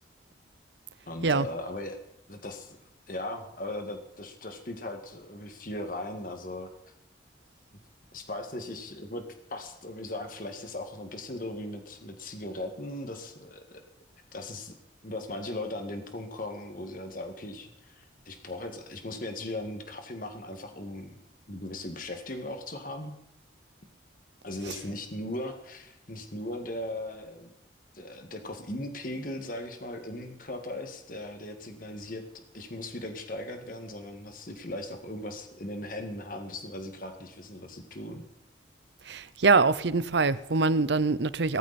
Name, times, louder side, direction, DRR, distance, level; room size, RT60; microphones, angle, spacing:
voice 1, 1.1-2.0 2.3-2.8 3.1-6.7 8.1-9.2 9.5-13.8 14.3-14.7 15.0-21.1 21.5-23.2 24.4-27.5 27.9-32.2 32.5-38.2, left 1 dB, 45° left, 1.9 m, -38 dB
voice 2, 39.0-41.6, right 4 dB, 70° right, 0.7 m, -24 dB
17.5 x 14.5 x 4.3 m
head